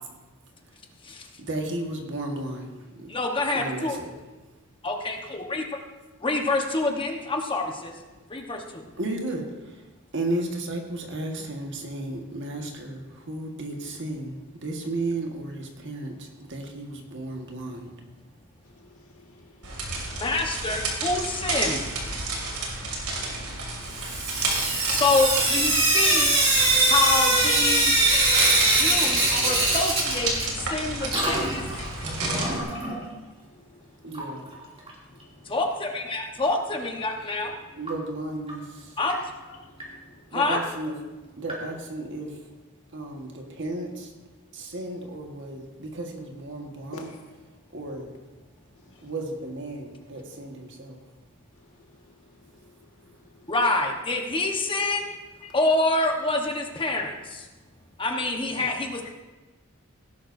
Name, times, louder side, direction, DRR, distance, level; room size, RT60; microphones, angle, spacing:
voice 1, 1.4-2.7 3.5-4.1 9.0-9.4 10.1-13.0 13.3-14.3 14.6-16.1 16.5-17.9 34.0-34.4 37.8-38.6 40.3-40.9 41.4-42.3 42.9-43.9 44.5-47.1 47.7-48.1 49.0-51.0 58.5-58.7, right 2 dB, 55° right, 2 dB, 1.6 m, -33 dB
voice 2, 3.1-4.0 4.8-5.6 6.2-7.9 8.3-8.8 20.2-21.8 24.9-26.3 26.9-27.9 28.6-31.6 35.5-37.5 39.0-39.1 40.3-40.6 53.5-55.1 55.5-57.5 58.0-59.1, left 2 dB, 25° left, 2 dB, 1.2 m, -26 dB
voice 3, 18.7-20.2 23.1-25.0 31.7-31.8 33.5-33.6 34.0-34.3 35.4-35.5 36.0-36.2 39.5-40.2 46.9-47.2 51.6-51.7 52.3-53.4 55.4-55.6, left 3 dB, 70° left, 1 dB, 2.0 m, -51 dB
sound 1, 19.6-32.6, right 2 dB, 80° right, 2.7 m, -32 dB
Sink (filling or washing) / Drip, 24.0-30.7 31.0-32.9 34.1-34.2 34.5-34.6 34.9-35.0 37.9-38.0 38.5-38.6 39.1-39.2 39.8-39.9 40.5-40.6 41.5-41.6, right 2 dB, 25° right, 2.7 m, -23 dB
17.5 x 11.5 x 2.7 m, 1.2 s
head